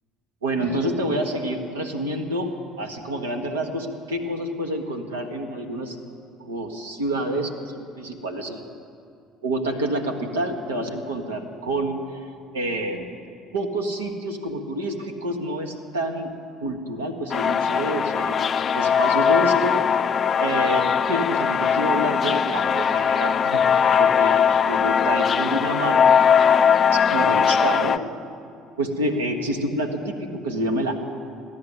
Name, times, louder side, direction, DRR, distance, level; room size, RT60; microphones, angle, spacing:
voice 1, 0.4-2.5 2.8-6.0 6.4-8.6 9.4-12.3 12.5-13.1 13.5-16.3 16.6-18.3 18.7-19.8 20.4-23.6 24.0-24.4 24.7-26.0 26.9-28.0 28.8-30.9, right 1 dB, 80° right, 2 dB, 1.4 m, -28 dB
sound 1, 17.3-28.0, left 7 dB, 40° left, 0.5 m, -20 dB
15.5 x 10.5 x 8.1 m, 2.3 s
figure-of-eight pair, 60°, 0 cm